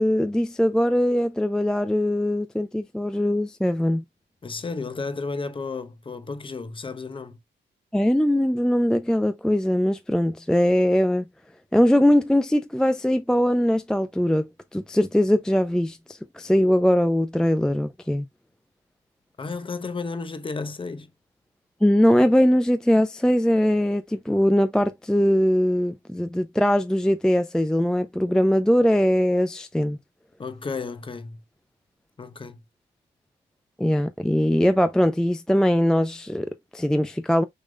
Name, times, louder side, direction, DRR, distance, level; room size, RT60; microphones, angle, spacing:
voice 1, 0.0-4.0 7.9-11.3 11.7-18.3 21.8-30.0 33.8-37.4, equal, 5° left, 0.4 m, -21 dB
voice 2, 4.4-7.4 19.4-21.1 30.4-31.4 32.2-32.6, left 4 dB, 25° left, 0.8 m, -33 dB
6.5 x 3.6 x 2.2 m
cardioid pair, 90°, 20 cm